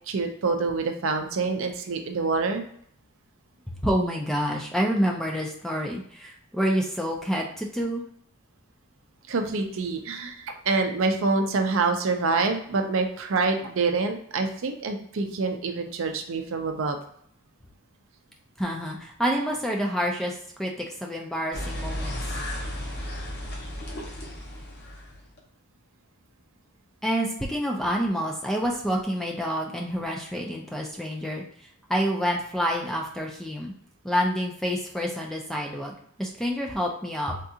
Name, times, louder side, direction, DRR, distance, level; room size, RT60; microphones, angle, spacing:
voice 1, 0.1-2.6 9.3-17.0, right 4 dB, 60° right, 5 dB, 0.5 m, -26 dB
voice 2, 3.8-8.0 18.6-22.2 27.0-33.7 34.0-37.4, equal, ahead, -1 dB, 0.3 m, -28 dB
sound 1, 21.5-25.4, left 1 dB, 50° left, 0.8 m, -34 dB
3.6 x 2.3 x 2.7 m, 0.64 s
head